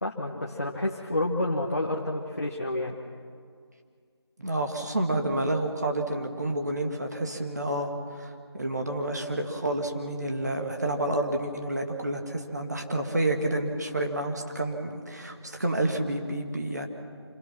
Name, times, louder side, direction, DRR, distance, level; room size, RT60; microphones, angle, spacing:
voice 1, 0.0-3.0, left 1 dB, 35° left, -2 dB, 1.2 m, -29 dB
voice 2, 4.4-16.9, right 1 dB, 40° right, 3 dB, 2.0 m, -29 dB
26.5 x 17.0 x 6.1 m, 2.1 s
figure-of-eight pair, 180°, 14 cm